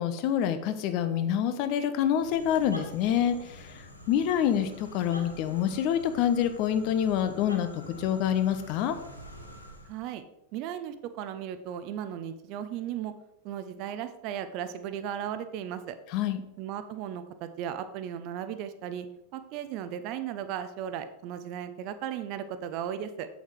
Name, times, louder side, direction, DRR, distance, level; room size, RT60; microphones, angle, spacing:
voice 1, 0.0-9.0 16.1-16.4, left 9 dB, 45° left, 9 dB, 1.0 m, -27 dB
sound 1, 2.1-10.0, equal, 90° left, 1.5 m, -46 dB
voice 2, 9.8-10.2 10.5-13.1 13.4-16.0 16.6-19.1 19.3-23.3, right 9 dB, 40° right, 10 dB, 0.9 m, -36 dB
8.4 x 8.0 x 4.7 m, 0.83 s
figure-of-eight pair, 90°, 0 cm